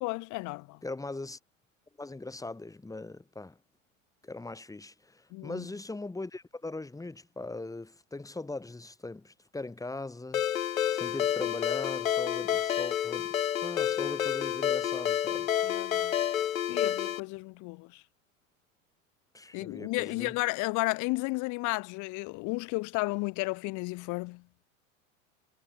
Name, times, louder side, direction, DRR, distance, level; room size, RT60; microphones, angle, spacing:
voice 1, 0.0-0.8 5.3-5.7 15.6-16.1 16.7-18.0 19.5-24.4, left 25 dB, 50° left, 1.3 m, -33 dB
voice 2, 0.8-1.4 2.0-3.6 4.2-10.4 10.9-13.3 13.6-15.6 19.3-20.4, left 2 dB, 10° left, 2.8 m, -40 dB
Ringtone, 10.3-17.2, left 11 dB, 90° left, 1.0 m, -29 dB
hypercardioid pair, 95°, 40 cm